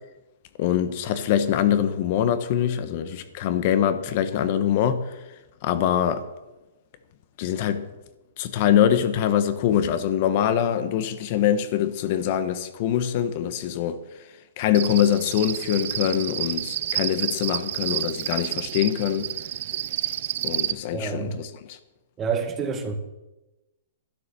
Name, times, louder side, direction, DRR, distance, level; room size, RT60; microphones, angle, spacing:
voice 1, 0.6-5.2 5.6-6.2 7.4-7.9 8.4-19.3 20.4-21.8, left 10 dB, 45° left, 1.0 m, -24 dB
Cricket, 14.7-20.7, right 12 dB, 55° right, 0.6 m, -30 dB
voice 2, 20.9-21.3 22.2-23.0, right 5 dB, 20° right, 1.7 m, -28 dB
12.0 x 9.6 x 6.8 m
hypercardioid pair, 145°, 0 cm